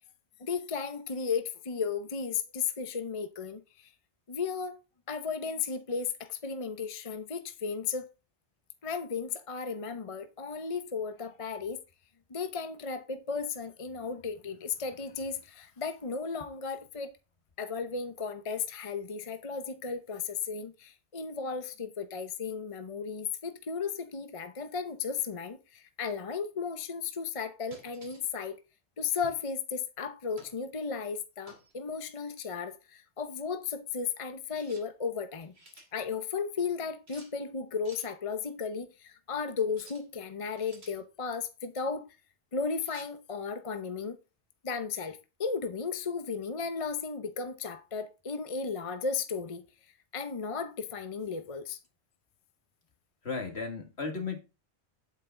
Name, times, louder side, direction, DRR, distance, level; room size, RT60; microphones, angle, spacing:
voice 1, 0.4-3.9 4.3-4.8 5.1-8.1 8.8-11.8 12.3-17.1 17.6-28.5 29.0-35.5 35.9-42.1 42.5-44.2 44.6-49.7 50.1-51.8, left 5 dB, 30° left, 0.8 m, -35 dB
sound 1, 27.7-28.3 29.2-29.5 30.4-30.6 31.5-31.7 34.5-34.9 35.3-35.9 37.1-37.3 37.8-38.1 39.7-40.1 40.6-41.0 42.8-43.1, right 2 dB, 65° right, 3.0 m, -53 dB
voice 2, 53.2-54.4, left 4 dB, 65° left, 2.2 m, -35 dB
9.3 x 8.4 x 3.7 m
omnidirectional pair, 1.2 m